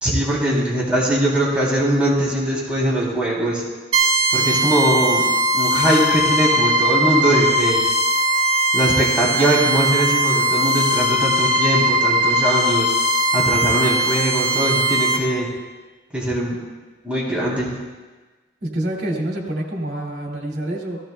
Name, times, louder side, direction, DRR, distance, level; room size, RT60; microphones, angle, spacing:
voice 1, 0.0-3.6 4.3-5.3 5.5-7.8 8.7-12.9 13.3-15.5 16.1-16.6 17.0-17.8, right 1 dB, 5° right, -6 dB, 3.0 m, -21 dB
sound 1, 3.9-15.2, right 1 dB, 30° right, 2.4 m, -19 dB
voice 2, 18.6-21.0, right 1 dB, 65° right, -2 dB, 2.3 m, -27 dB
17.0 x 15.0 x 2.3 m, 1.3 s
head